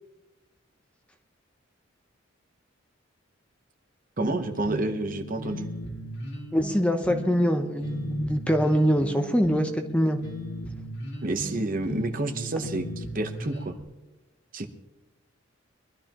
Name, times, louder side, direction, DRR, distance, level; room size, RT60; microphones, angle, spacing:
sound 1, 4.2-13.8, right 1 dB, 55° left, 2.1 m, -37 dB
voice 1, 4.2-5.7 11.2-13.7 14.5-14.7, right 2 dB, 40° right, 7 dB, 1.0 m, -29 dB
voice 2, 6.5-10.2, equal, 5° left, 5 dB, 0.8 m, -24 dB
22.5 x 12.5 x 3.0 m, 1.1 s
head